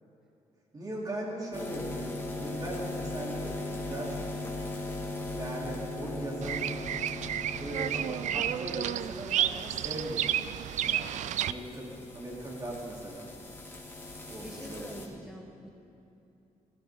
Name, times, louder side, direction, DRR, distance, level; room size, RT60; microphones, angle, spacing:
voice 1, 0.7-4.5 5.3-6.7 7.6-10.3 10.8-13.3 14.3-15.1, right 1 dB, 30° right, -3 dB, 3.4 m, -39 dB
sound 1, 1.5-15.1, left 2 dB, 15° left, 2.0 m, -39 dB
Bird vocalization bird call bird song, 6.4-11.5, right 10 dB, 70° right, 0.4 m, -31 dB
voice 2, 14.4-15.7, equal, 5° right, 1 dB, 1.3 m, -45 dB
19.5 x 15.5 x 3.8 m, 2.7 s
cardioid pair, 130°, 13 cm